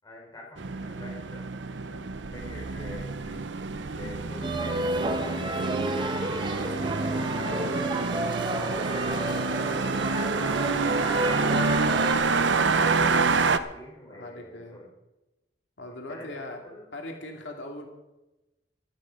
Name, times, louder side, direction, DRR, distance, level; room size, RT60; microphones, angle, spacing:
voice 1, 0.0-1.4 2.3-7.2 8.9-9.8 10.3-14.9 16.1-16.9, left 1 dB, 20° left, -2 dB, 5.1 m, -45 dB
sound 1, 0.6-13.6, right 4 dB, 85° right, 0.8 m, -28 dB
sound 2, 4.4-12.1, right 1 dB, 25° right, 1.3 m, -30 dB
voice 2, 7.4-8.2 14.0-14.8 15.8-16.6 16.9-17.9, left 2 dB, 85° left, 2 dB, 2.3 m, -40 dB
15.5 x 13.0 x 5.1 m, 1.0 s
head